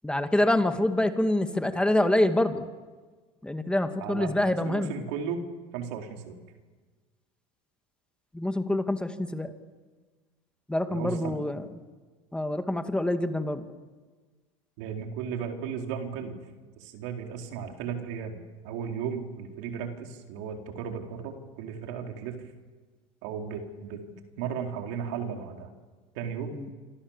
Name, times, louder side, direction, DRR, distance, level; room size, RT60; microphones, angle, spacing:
voice 1, 0.0-2.7 3.4-4.9 8.3-9.5 10.7-11.6 12.3-13.7 26.5-26.7, left 1 dB, 5° left, 7 dB, 2.2 m, -26 dB
voice 2, 4.0-4.3 4.6-5.4 5.7-6.4 10.9-11.4 14.8-16.4 16.8-18.4 18.6-22.4 23.2-24.0 24.4-25.7 26.1-26.6, right 7 dB, 75° right, 3 dB, 4.3 m, -35 dB
27.5 x 26.5 x 7.4 m, 1.4 s
supercardioid pair, 95°, 15 cm